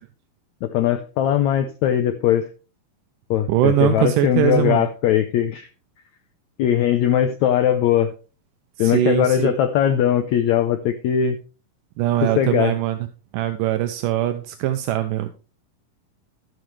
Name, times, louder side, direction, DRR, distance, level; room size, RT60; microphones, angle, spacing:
voice 1, 0.6-2.5 3.3-5.7 6.6-8.1 8.8-11.4 12.4-12.7, left 10 dB, 90° left, 9 dB, 1.6 m, -20 dB
voice 2, 3.5-4.8 8.8-9.6 12.0-13.0 13.3-15.3, right 12 dB, 80° right, 8 dB, 2.1 m, -21 dB
12.0 x 9.1 x 3.3 m, 0.33 s
omnidirectional pair, 4.2 m